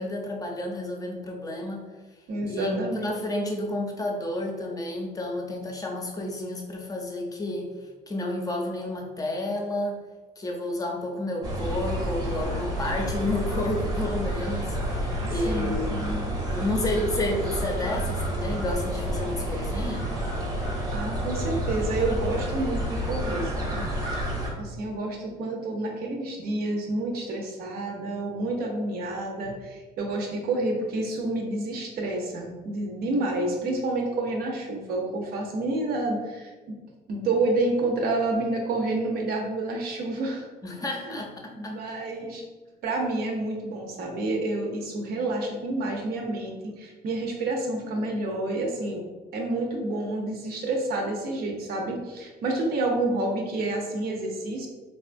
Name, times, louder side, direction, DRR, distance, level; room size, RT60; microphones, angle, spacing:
voice 1, 0.0-1.9 2.5-7.7 8.1-10.0 10.4-16.2 16.4-20.1 40.6-41.8, left 1 dB, 20° left, 1 dB, 0.5 m, -31 dB
voice 2, 2.3-3.1 15.2-16.3 20.6-23.9 24.1-36.8 37.1-40.4 40.9-41.2 41.5-42.5 42.8-49.0 49.3-54.7, right 2 dB, 65° right, 1 dB, 0.7 m, -29 dB
sound 1, 11.4-24.5, equal, 20° right, 0.7 m, -29 dB
3.5 x 2.3 x 2.5 m, 1.3 s
cardioid pair, 110°, 17 cm